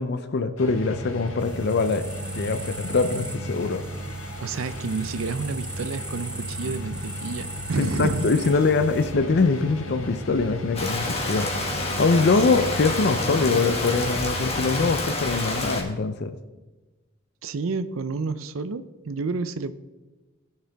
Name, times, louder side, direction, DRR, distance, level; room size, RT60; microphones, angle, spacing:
voice 1, 0.0-2.1 2.3-3.8 7.8-11.5 12.0-16.4, left 4 dB, 55° left, 10 dB, 0.5 m, -23 dB
sound 1, 0.6-15.1, right 1 dB, 75° left, 1.7 m, -35 dB
sound 2, 1.4-9.1, right 2 dB, 5° right, 0.6 m, -40 dB
voice 2, 4.4-8.3 12.5-12.6 17.4-19.7, right 4 dB, 75° right, 12 dB, 0.5 m, -30 dB
Rain, 10.7-15.8, left 2 dB, 30° left, 1.8 m, -28 dB
18.0 x 6.5 x 3.4 m, 1.2 s
head